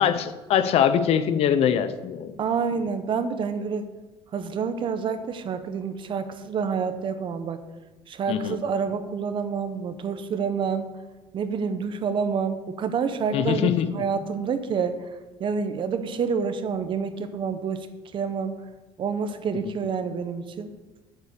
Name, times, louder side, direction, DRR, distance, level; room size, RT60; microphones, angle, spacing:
voice 1, 0.0-2.3 8.3-8.6 13.3-14.0, left 9 dB, 60° left, 11 dB, 0.9 m, -23 dB
voice 2, 2.4-3.9 4.3-7.6 8.1-10.9 11.3-14.9 15.4-17.9 18.1-18.5 19.0-20.7, right 6 dB, 45° right, 9 dB, 1.1 m, -28 dB
8.9 x 7.4 x 6.9 m, 1.2 s
cardioid pair, 115°, 12 cm